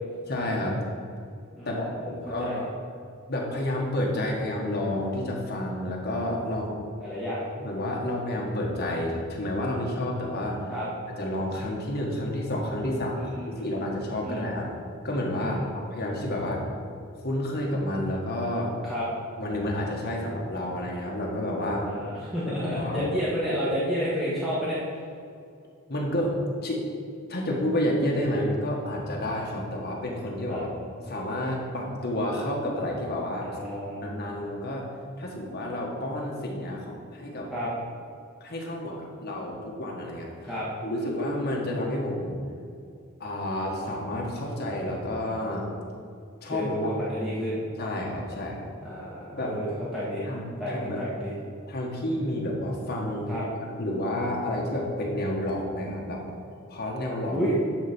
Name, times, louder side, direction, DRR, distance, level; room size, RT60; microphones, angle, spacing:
voice 1, 0.3-0.8 1.6-2.7 3.3-6.7 7.6-10.6 11.2-13.2 13.6-14.7 15.0-16.6 17.2-18.7 19.4-21.9 22.7-23.0 25.9-26.3 26.6-26.8 27.3-30.7 31.1-33.5 34.0-34.9 35.2-37.5 38.4-40.3 40.8-42.4 43.2-45.7 46.4-46.9 47.8-48.7 49.4-49.5 50.2-51.0 51.7-53.3 53.8-56.2 56.7-57.4, left 1 dB, 50° left, -2 dB, 1.5 m, -30 dB
voice 2, 2.2-2.6 7.0-7.4 10.7-10.9 13.2-13.6 14.2-14.5 15.4-15.7 18.8-19.0 21.8-24.8 30.5-30.6 33.4-34.0 37.5-37.7 40.4-40.7 46.5-47.6 48.8-49.7 49.9-50.3 50.6-51.3 53.3-53.4 57.3-57.6, equal, ahead, -10 dB, 1.4 m, -30 dB
10.5 x 4.1 x 6.0 m, 2.4 s
head